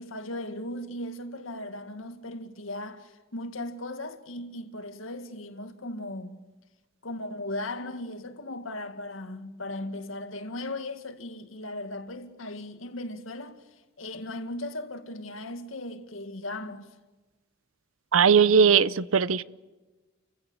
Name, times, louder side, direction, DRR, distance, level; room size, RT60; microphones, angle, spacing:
voice 1, 0.0-6.4 7.0-16.9, left 1 dB, 80° left, 2.0 m, -37 dB
voice 2, 18.1-19.4, right 6 dB, 90° right, 0.7 m, -19 dB
30.0 x 16.0 x 8.7 m
head